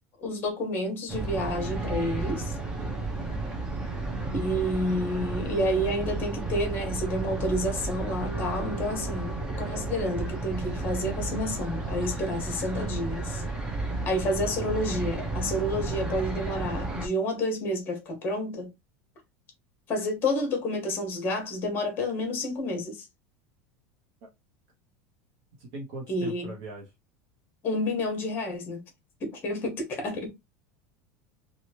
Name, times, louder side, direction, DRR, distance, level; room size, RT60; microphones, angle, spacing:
voice 1, 0.2-2.6 4.3-9.3 9.6-13.4 14.0-18.7 19.9-23.1 26.1-26.5 27.6-28.8 29.2-30.3, left 1 dB, 25° left, 1.1 m, -29 dB
sound 1, 1.1-17.1, right 3 dB, 10° right, 0.5 m, -32 dB
voice 2, 25.6-26.9, right 2 dB, 55° right, 0.9 m, -40 dB
3.0 x 2.4 x 2.8 m
supercardioid pair, 165°, 8 cm